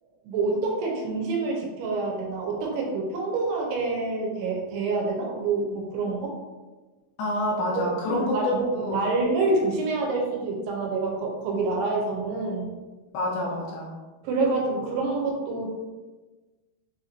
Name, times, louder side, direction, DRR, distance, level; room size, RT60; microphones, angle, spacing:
voice 1, 0.2-6.4 8.0-12.7 14.2-15.7, right 3 dB, 85° right, -1 dB, 2.6 m, -27 dB
voice 2, 7.2-8.4 8.7-9.0 13.1-13.9, left 1 dB, 80° left, -3 dB, 2.4 m, -28 dB
6.3 x 2.9 x 2.6 m, 1.2 s
omnidirectional pair, 5.0 m